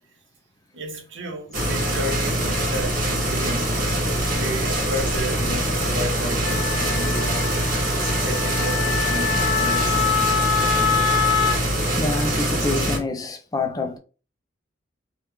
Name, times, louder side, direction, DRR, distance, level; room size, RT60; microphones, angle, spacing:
voice 1, 0.7-3.7 4.1-7.5 8.2-11.1, right 1 dB, 70° right, 0.9 m, -33 dB
sound 1, 1.5-13.0, right 1 dB, 45° right, 1.1 m, -23 dB
Wind instrument woodwind instrument, 6.4-11.6, left 8 dB, 75° left, 1.0 m, -25 dB
voice 2, 12.0-14.0, left 2 dB, 20° left, 0.4 m, -26 dB
3.0 x 2.3 x 3.4 m
head